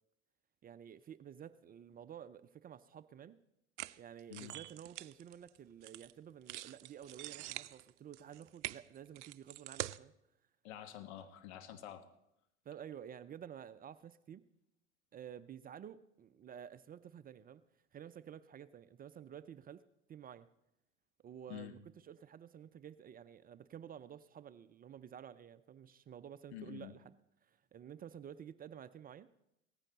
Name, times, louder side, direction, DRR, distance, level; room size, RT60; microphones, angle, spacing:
voice 1, 0.6-3.4 4.0-10.1 12.7-14.4 15.1-17.6 17.9-19.8 20.1-20.5 21.2-27.1 27.4-29.3, right 9 dB, 25° right, 14 dB, 0.5 m, -51 dB
sound 1, 3.8-6.1 6.5-10.0, right 16 dB, 75° right, 0.5 m, -45 dB
voice 2, 10.6-12.0 21.5-21.8 26.5-26.9, left 11 dB, 65° left, 9 dB, 1.4 m, -48 dB
17.0 x 14.5 x 4.0 m, 0.84 s
hypercardioid pair, 75°, 36 cm